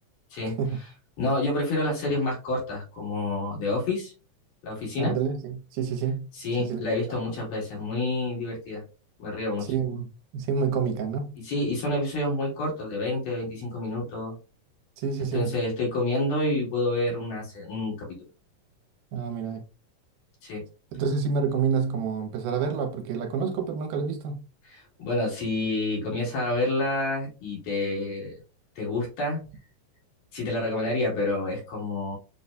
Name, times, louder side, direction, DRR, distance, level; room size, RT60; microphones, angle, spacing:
voice 1, 1.2-4.1 4.6-5.2 6.3-8.8 9.2-9.7 11.4-14.4 15.3-18.2 20.4-20.6 24.6-28.3 28.8-29.4 30.3-32.2, left 2 dB, 90° left, 3.7 m, -28 dB
voice 2, 5.0-6.3 6.6-6.8 9.7-10.1 10.3-11.4 15.0-15.6 19.1-19.6 20.9-24.5, right 6 dB, 80° right, 2.3 m, -28 dB
6.7 x 2.2 x 2.6 m
omnidirectional pair, 3.8 m